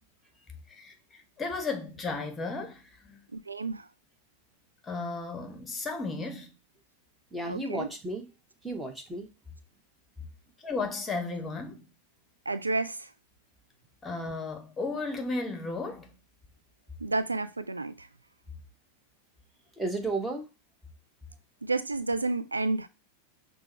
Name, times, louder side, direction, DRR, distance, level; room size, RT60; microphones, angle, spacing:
voice 1, 0.7-3.2 4.8-6.5 10.6-11.9 14.0-16.1, left 3 dB, 15° left, 1.0 m, -34 dB
voice 2, 3.3-3.8 7.5-7.9 12.5-13.1 17.0-18.1 21.6-22.9, right 3 dB, 80° right, 0.3 m, -30 dB
voice 3, 7.3-8.3 8.6-9.3 19.8-20.5, right 2 dB, 5° right, 1.1 m, -33 dB
6.1 x 2.1 x 4.0 m
figure-of-eight pair, 90°, 0 cm